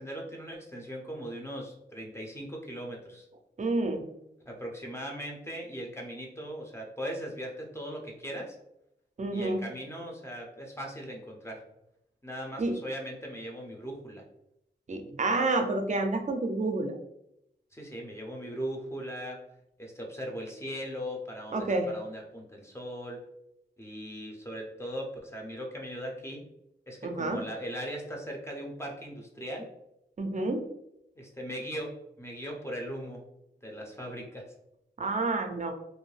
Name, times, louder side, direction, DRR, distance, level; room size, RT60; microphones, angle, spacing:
voice 1, 0.0-3.3 4.5-8.5 9.3-11.6 12.2-14.2 17.7-19.4 19.8-23.2 23.8-26.4 26.9-29.7 31.2-33.2 33.6-34.4, equal, 15° left, 0 dB, 0.7 m, -39 dB
voice 2, 3.6-4.0 9.2-9.6 12.6-12.8 14.9-17.0 21.5-21.9 27.0-27.4 30.2-30.6 35.0-35.7, right 2 dB, 40° right, 5 dB, 0.5 m, -29 dB
2.6 x 2.1 x 3.1 m, 0.82 s
cardioid pair, 55°, 19 cm